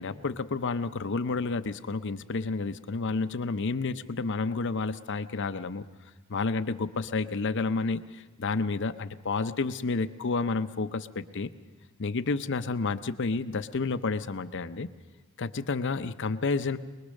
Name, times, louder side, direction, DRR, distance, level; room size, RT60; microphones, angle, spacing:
voice 1, 0.0-5.8 6.3-11.5 12.0-14.9 15.4-16.8, left 4 dB, 55° left, 12 dB, 0.7 m, -30 dB
23.0 x 21.0 x 6.5 m, 1.3 s
head